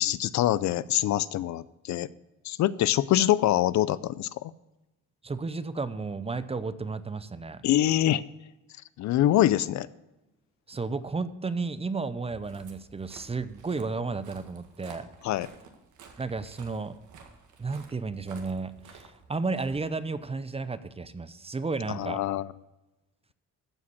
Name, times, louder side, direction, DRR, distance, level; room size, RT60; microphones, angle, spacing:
voice 1, 0.0-2.1 2.4-4.5 7.6-8.2 9.0-9.9 15.2-15.5 21.9-22.5, left 13 dB, 70° left, 18 dB, 0.5 m, -25 dB
voice 2, 5.2-7.6 10.7-15.1 16.2-17.0 17.6-22.2, right 4 dB, 20° right, 14 dB, 0.6 m, -33 dB
Walk footsteps, 12.1-20.4, right 5 dB, 75° right, 1.7 m, -52 dB
14.5 x 5.0 x 7.1 m, 1.0 s
cardioid pair, 90°, 30 cm